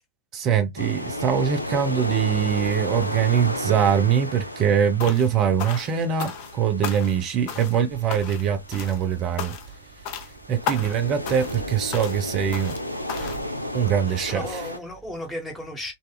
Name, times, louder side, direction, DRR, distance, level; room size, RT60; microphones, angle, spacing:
voice 1, 0.3-9.6 10.5-12.8 13.1-13.4 13.7-14.7, right 8 dB, 35° right, 0.7 m, -23 dB
sound 1, 0.8-14.8, left 1 dB, 90° left, 0.3 m, -34 dB
sound 2, 5.0-5.3 5.6-6.6 6.8-7.2 7.5-7.8 8.1-8.5 8.7-9.0 9.4-9.8 10.1-10.3 10.7-11.0 11.3-11.6 11.9-12.2 12.5-12.8 13.1-13.4, left 7 dB, 45° left, 0.6 m, -34 dB
voice 2, 14.1-15.9, left 1 dB, 5° left, 1.1 m, -35 dB
2.7 x 2.3 x 2.3 m
figure-of-eight pair, 90°, 0 cm